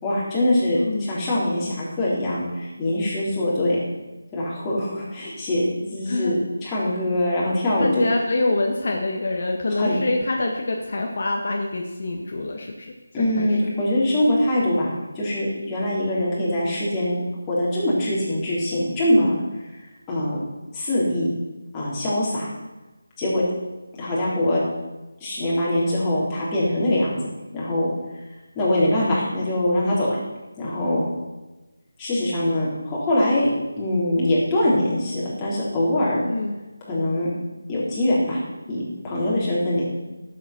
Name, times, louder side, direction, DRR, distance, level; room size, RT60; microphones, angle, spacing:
voice 1, 0.0-0.8 1.1-3.8 4.3-5.6 5.9-8.0 9.8-10.0 13.1-17.2 17.5-19.3 20.1-20.4 20.7-21.3 21.7-22.5 23.2-23.4 24.0-24.6 25.2-27.2 27.5-27.9 28.6-30.2 30.6-31.0 32.0-33.5 33.8-36.2 36.8-37.3 37.7-38.4 38.7-39.8, left 1 dB, 15° left, -7 dB, 3.8 m, -23 dB
voice 2, 0.7-1.1 6.1-6.3 7.8-12.9 13.4-13.6 36.2-36.6, left 2 dB, 55° left, 1 dB, 1.5 m, -25 dB
12.0 x 8.2 x 6.1 m, 1.1 s
figure-of-eight pair, 165°, 0 cm